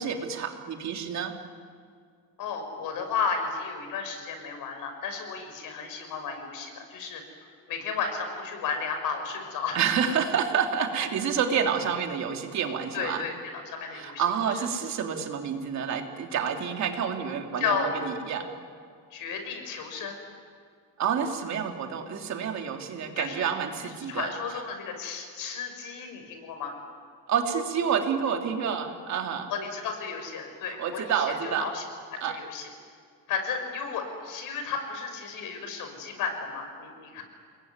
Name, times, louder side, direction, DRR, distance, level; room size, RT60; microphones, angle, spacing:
voice 1, 0.0-1.3 9.7-13.3 13.9-18.5 21.0-24.6 27.3-29.5 30.7-31.7 32.2-32.4, right 7 dB, 55° right, 3 dB, 3.0 m, -29 dB
voice 2, 2.4-7.2 7.7-9.8 12.9-14.2 17.6-17.9 19.1-20.2 23.2-23.5 24.1-26.8 29.5-31.0 31.4-31.8 32.1-32.6 33.3-37.2, left 5 dB, 85° left, 5 dB, 5.9 m, -33 dB
30.0 x 20.5 x 9.6 m, 2.2 s
cardioid pair, 150°, 32 cm